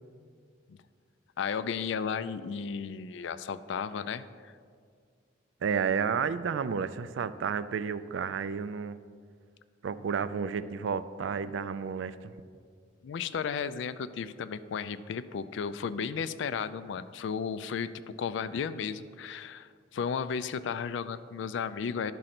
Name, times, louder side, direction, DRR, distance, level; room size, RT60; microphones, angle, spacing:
voice 1, 1.4-4.5 13.0-22.1, left 6 dB, 70° left, 14 dB, 0.3 m, -34 dB
voice 2, 5.6-9.0 9.8-12.3, right 6 dB, 70° right, 14 dB, 0.3 m, -31 dB
11.0 x 3.9 x 5.9 m, 2.1 s
head